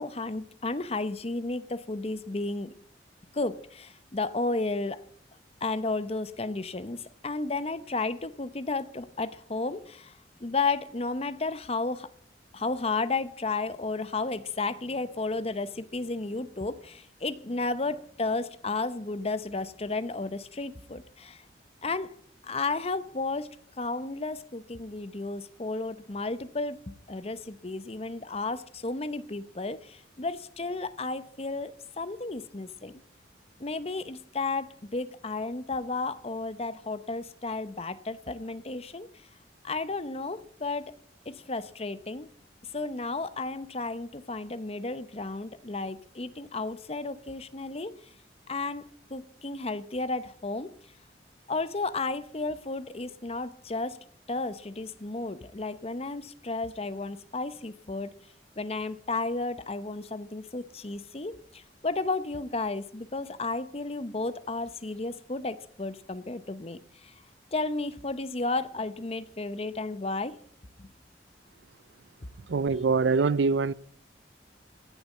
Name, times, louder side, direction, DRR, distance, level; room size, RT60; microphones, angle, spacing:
voice 1, 0.0-2.7 3.3-5.0 5.6-10.1 10.4-12.1 12.5-21.4 21.8-22.1 22.4-23.5 23.8-33.0 33.6-39.1 39.6-40.9 41.3-42.3 42.7-47.9 48.5-50.7 51.5-58.1 58.6-66.8 67.5-70.4 70.8-70.9, left 3 dB, 35° left, 0.8 m, -33 dB
voice 2, 72.5-73.7, right 4 dB, 90° right, 0.5 m, -24 dB
16.5 x 7.0 x 8.4 m
head